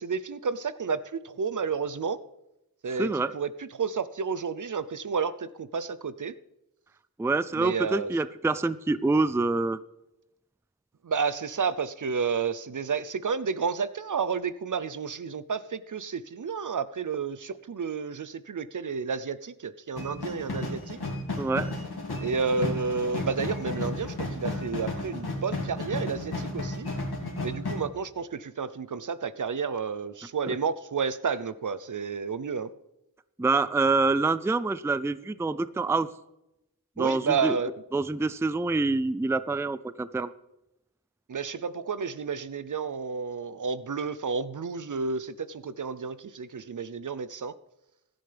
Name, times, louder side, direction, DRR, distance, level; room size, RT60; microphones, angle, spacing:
voice 1, 0.0-2.2 2.8-6.3 7.6-8.1 11.0-21.0 22.2-26.9 27.4-32.7 37.0-37.7 41.3-47.5, right 5 dB, 55° right, 15 dB, 0.6 m, -31 dB
voice 2, 3.0-3.3 7.2-9.8 21.4-21.7 30.5-30.6 33.4-36.1 37.0-37.6 37.9-40.3, right 3 dB, 5° right, 15 dB, 0.4 m, -26 dB
sound 1, 20.0-27.8, left 2 dB, 80° left, 2.3 m, -33 dB
16.5 x 11.5 x 3.4 m, 0.90 s
wide cardioid pair, 55°, 38 cm